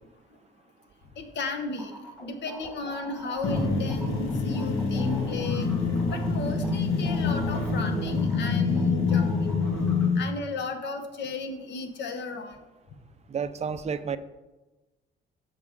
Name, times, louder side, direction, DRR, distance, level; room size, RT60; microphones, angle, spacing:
voice 1, 1.2-1.9 2.2-5.7 6.1-9.5 10.1-12.6, left 3 dB, 60° left, 6 dB, 1.0 m, -34 dB
sound 1, 1.8-8.8 9.1-10.1, equal, 5° left, 1.7 m, -44 dB
sound 2, 3.4-10.2, left 4 dB, 90° left, 1.5 m, -26 dB
voice 2, 13.3-14.2, right 6 dB, 35° right, 13 dB, 0.4 m, -30 dB
6.6 x 5.8 x 3.6 m, 1.1 s
cardioid pair, 90°, 20 cm